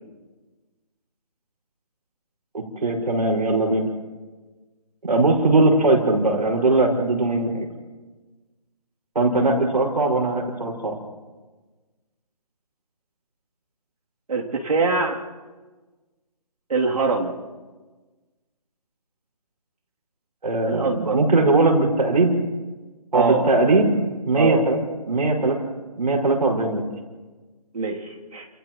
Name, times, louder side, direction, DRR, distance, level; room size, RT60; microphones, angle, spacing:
voice 1, 2.5-3.9 5.0-7.7 9.1-11.0 20.4-22.3 23.1-23.9 24.3-24.8 25.1-25.6 26.0-26.8, right 2 dB, 90° right, 0 dB, 5.8 m, -20 dB
voice 2, 14.3-15.2 16.7-17.4 20.7-21.2 23.1-23.4 24.3-24.6 27.7-28.5, right 3 dB, 65° right, 0 dB, 3.1 m, -23 dB
29.5 x 29.0 x 3.1 m, 1.3 s
hypercardioid pair, 170°, 20 cm